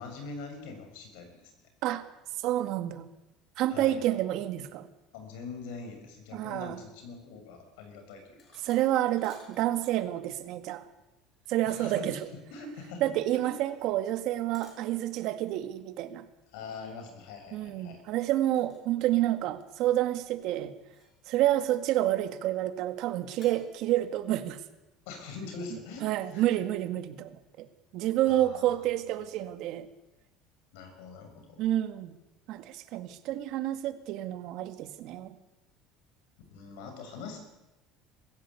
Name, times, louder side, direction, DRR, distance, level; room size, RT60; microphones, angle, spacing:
voice 1, 0.0-1.5 3.7-4.0 5.1-8.4 11.6-13.0 13.3-13.6 16.5-18.0 25.0-26.6 28.3-28.9 30.7-31.6 36.5-37.4, left 4 dB, 85° left, 6 dB, 6.7 m, -43 dB
voice 2, 2.4-3.1 3.6-4.9 6.3-6.8 8.6-10.8 11.5-12.2 13.0-16.2 17.5-20.7 21.3-24.6 26.0-27.7 27.9-29.9 31.6-32.1 32.5-35.4, right 13 dB, 60° right, 9 dB, 1.9 m, -29 dB
sound 1, 8.4-10.0 11.3-12.1 14.5-14.9 16.7-16.9 18.6-18.9 19.2-19.8 20.5-21.3 23.4-24.0, left 3 dB, 40° left, 7.2 m, -59 dB
22.5 x 15.5 x 8.5 m, 0.99 s
cardioid pair, 135°, 0 cm